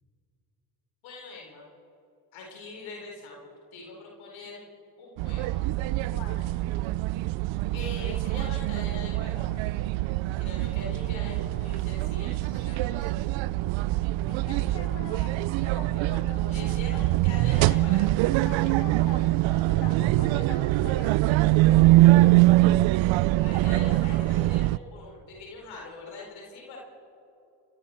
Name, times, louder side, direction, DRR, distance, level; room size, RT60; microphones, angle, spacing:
voice 1, 1.0-1.7 2.3-4.6 5.0-5.6 7.7-9.8 10.4-13.2 16.0-18.2 19.6-20.0 23.4-26.8, left 3 dB, 75° left, -1 dB, 4.5 m, -42 dB
sound 1, 5.2-24.8, right 17 dB, 75° right, 0.6 m, -23 dB
voice 2, 6.1-6.5 11.0-11.5 14.2-16.8 18.4-22.3, left 4 dB, 60° left, 3 dB, 4.7 m, -43 dB
27.5 x 23.0 x 4.5 m, 2.9 s
supercardioid pair, 65°, 47 cm